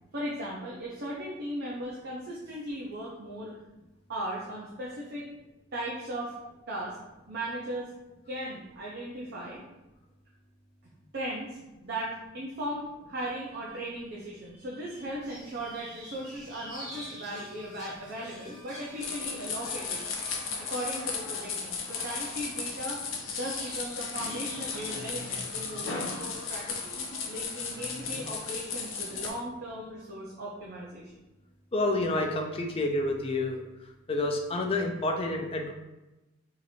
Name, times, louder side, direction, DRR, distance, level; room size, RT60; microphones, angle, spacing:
voice 1, 0.1-3.5 4.1-5.3 5.7-6.3 6.7-7.0 7.3-7.9 8.3-9.6 10.8-20.0 20.6-23.0 23.3-27.0 27.3-31.1, right 1 dB, 55° right, -4 dB, 0.6 m, -37 dB
sound 1, 15.2-26.9, equal, 20° right, 1.3 m, -48 dB
sound 2, 19.0-29.3, left 5 dB, 75° left, 0.6 m, -35 dB
voice 2, 31.7-33.6 34.1-35.7, left 2 dB, 30° left, 2 dB, 0.4 m, -29 dB
2.9 x 2.5 x 4.1 m, 1.0 s
head